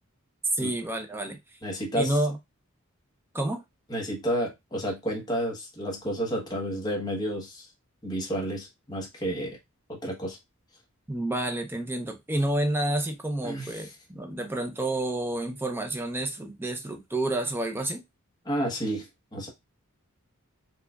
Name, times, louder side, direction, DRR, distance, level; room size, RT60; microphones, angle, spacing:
voice 1, 0.5-1.4 1.9-2.4 3.3-3.6 11.1-18.0, right 1 dB, 10° right, 0.5 m, -29 dB
voice 2, 1.6-2.1 3.9-7.7 8.0-9.6 9.9-10.4 13.4-13.9 18.4-19.1 19.3-19.5, equal, 20° left, 1.0 m, -31 dB
4.5 x 2.4 x 2.3 m
head